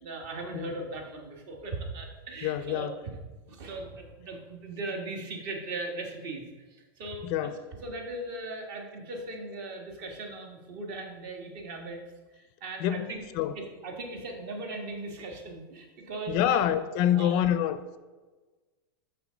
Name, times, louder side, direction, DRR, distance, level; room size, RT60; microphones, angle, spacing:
voice 1, 0.0-3.1 3.5-7.5 7.8-12.0 12.3-13.2 13.5-16.6 17.1-17.5, right 2 dB, 55° right, 1.5 m, -38 dB
voice 2, 2.4-2.9 7.2-7.6 12.8-13.5 16.3-18.0, left 10 dB, 40° left, 0.4 m, -27 dB
6.0 x 5.9 x 4.0 m
supercardioid pair, 145°, 13 cm